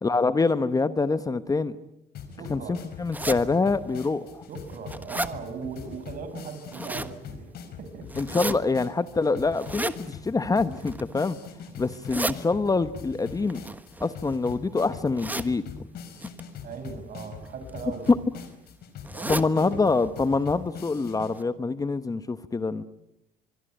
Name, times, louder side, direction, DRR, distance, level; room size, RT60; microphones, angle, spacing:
voice 1, 0.0-1.7 2.5-4.4 8.2-11.4 11.8-13.6 14.0-15.6 18.1-18.2 19.3-22.8, left 3 dB, 20° left, 12 dB, 1.0 m, -25 dB
sound 1, 2.1-21.3, left 6 dB, 70° left, 4.5 m, -42 dB
voice 2, 2.3-2.9 4.5-7.5 7.8-8.1 16.6-18.1 19.1-19.7, right 5 dB, 55° right, 9 dB, 5.9 m, -39 dB
sound 2, 3.1-3.4 4.0-4.1 4.6-5.3 6.5-7.1 8.1-8.5 9.5-10.0 10.7-11.1 11.8-12.4 13.5-14.5 15.2-15.5 16.2-16.4 17.4-17.7 18.0-18.1 18.4-18.5 19.0-19.5 19.9-20.0 20.3-20.4 21.0-21.1 21.4-21.5, right 2 dB, 10° right, 1.3 m, -32 dB
25.0 x 22.0 x 9.1 m, 0.86 s
cardioid pair, 110°, 17 cm